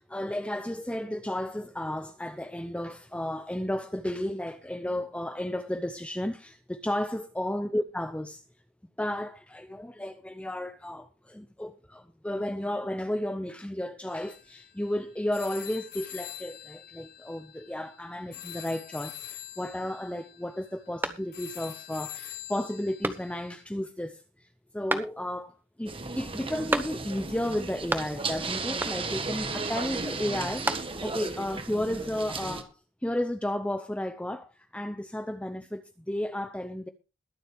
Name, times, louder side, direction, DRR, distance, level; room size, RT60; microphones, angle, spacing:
voice 1, 0.0-8.4 9.0-24.5 24.7-36.9, left 1 dB, 5° left, 0.6 m, -33 dB
sound 1, 14.1-23.6, left 11 dB, 50° left, 1.2 m, -45 dB
sound 2, 21.0-21.7 22.1-22.2 23.0-23.6 24.9-25.5 26.7-27.3 27.6-28.4 28.8-29.3 30.3-31.2, right 1 dB, 10° right, 1.0 m, -33 dB
sound 3, 25.9-32.6, right 3 dB, 25° right, 1.4 m, -35 dB
22.0 x 7.5 x 3.4 m
head